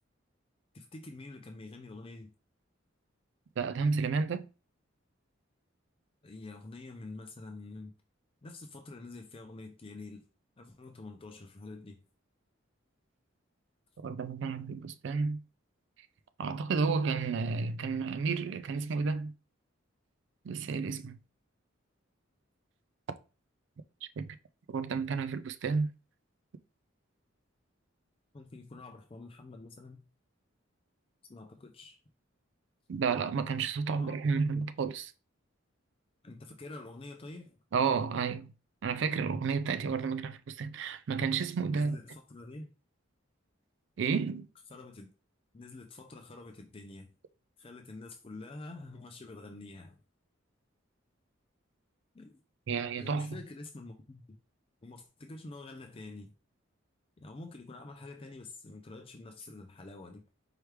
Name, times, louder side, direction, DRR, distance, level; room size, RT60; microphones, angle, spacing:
voice 1, 0.7-2.3 6.2-7.9 8.4-10.2 10.6-12.0 28.3-30.0 31.3-32.0 33.9-34.7 36.2-37.6 41.7-42.7 44.7-45.1 45.5-47.1 47.6-50.0 52.1-52.4 53.0-54.2 54.8-56.3 57.2-60.2, left 2 dB, 30° left, 0.4 m, -47 dB
voice 2, 3.6-4.5 14.0-15.4 16.4-19.3 20.4-21.2 24.2-24.4 24.7-25.9 32.9-35.1 37.7-38.5 38.8-42.0 44.0-44.5 52.7-53.3, right 5 dB, 60° right, 0.4 m, -31 dB
4.7 x 3.1 x 3.2 m
head